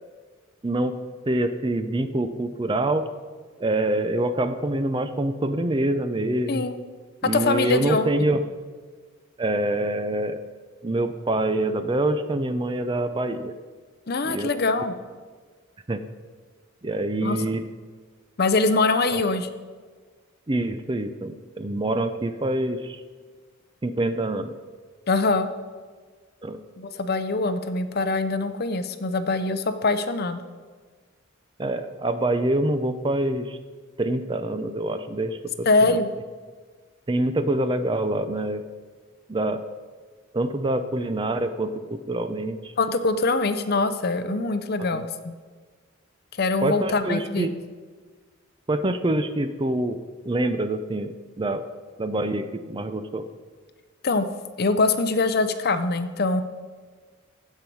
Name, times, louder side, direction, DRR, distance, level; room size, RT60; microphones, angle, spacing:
voice 1, 0.6-1.0 1.3-3.0 3.6-6.6 7.2-8.4 9.4-10.4 10.8-13.5 14.2-14.5 14.8-14.9 15.9-16.0 16.8-17.6 19.1-19.2 20.5-23.0 23.8-24.6 26.4-26.6 31.6-33.6 34.0-36.0 37.1-38.6 39.3-39.6 40.3-42.7 44.8-45.0 46.6-47.5 48.7-50.0 50.3-51.6 52.0-53.2, right 1 dB, 25° right, 10 dB, 0.5 m, -25 dB
voice 2, 7.3-8.1 14.1-14.9 17.2-17.5 18.4-19.5 25.1-25.5 26.8-30.4 35.7-36.1 42.8-45.3 46.4-47.5 54.0-54.3 54.6-56.4, left 3 dB, 50° left, 10 dB, 0.6 m, -23 dB
15.5 x 5.6 x 4.6 m, 1.5 s
head